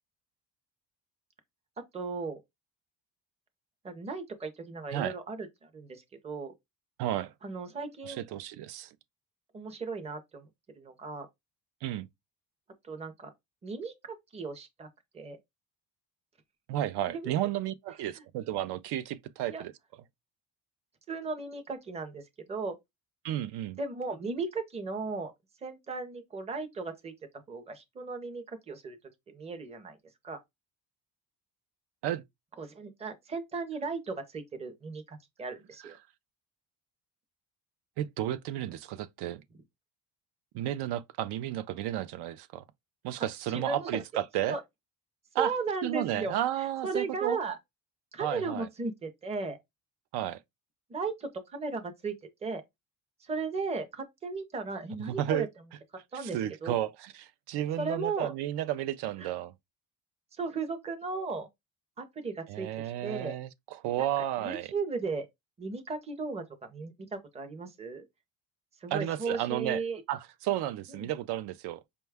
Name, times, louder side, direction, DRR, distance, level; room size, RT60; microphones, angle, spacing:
voice 1, 1.9-2.4 3.8-6.5 7.4-8.2 9.5-10.5 10.8-11.3 12.8-13.3 13.6-14.9 15.1-15.4 17.1-17.3 19.5-19.6 21.1-22.2 22.5-22.8 23.8-25.3 25.6-27.1 27.5-29.0 29.3-30.0 30.2-30.4 32.6-36.0 43.5-44.0 44.5-44.6 45.4-46.4 46.8-47.6 48.1-49.6 50.9-52.1 52.4-52.6 53.2-55.5 56.1-56.8 57.8-58.3 59.2-59.3 60.4-61.5 62.0-62.7 63.0-63.3 64.0-65.3 65.6-66.4 66.7-68.0 68.8-70.0 71.0-71.1, right 4 dB, 15° right, 0.5 m, -36 dB
voice 2, 7.0-7.3 8.1-8.9 11.8-12.1 16.7-19.7 23.2-23.8 32.0-32.2 38.0-39.4 40.5-42.6 43.0-44.6 45.3-45.5 45.8-47.4 48.2-48.7 50.1-50.4 55.1-55.5 56.1-59.5 62.5-64.7 68.9-69.8 70.1-71.8, right 12 dB, 80° right, 0.5 m, -32 dB
5.2 x 2.3 x 3.3 m
cardioid pair, 175°, 40 cm